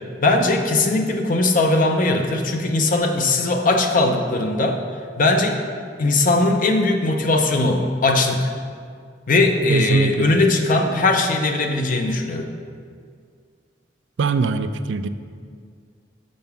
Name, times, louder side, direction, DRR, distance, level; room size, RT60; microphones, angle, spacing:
voice 1, 0.2-4.8 5.2-5.6 6.0-8.5 9.3-12.5, left 2 dB, 50° left, 4 dB, 0.6 m, -19 dB
voice 2, 9.7-10.3 14.2-15.1, right 4 dB, 90° right, 11 dB, 0.4 m, -21 dB
6.8 x 5.3 x 5.8 m, 2.1 s
head